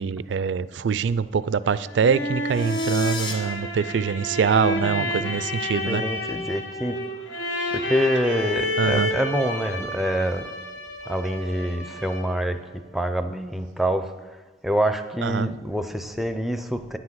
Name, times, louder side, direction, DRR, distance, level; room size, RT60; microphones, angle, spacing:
voice 1, 0.0-6.0 8.8-9.1 15.2-15.5, right 6 dB, 80° right, 17 dB, 0.4 m, -24 dB
sound 1, 1.7-12.5, left 1 dB, 80° left, 1.2 m, -30 dB
sound 2, 2.5-3.3, left 4 dB, 25° left, 1.4 m, -34 dB
voice 2, 4.8-5.4 5.7-7.0 7.7-10.4 11.1-14.1 14.6-17.0, equal, ahead, 8 dB, 0.5 m, -26 dB
10.0 x 6.1 x 7.4 m, 1.3 s
head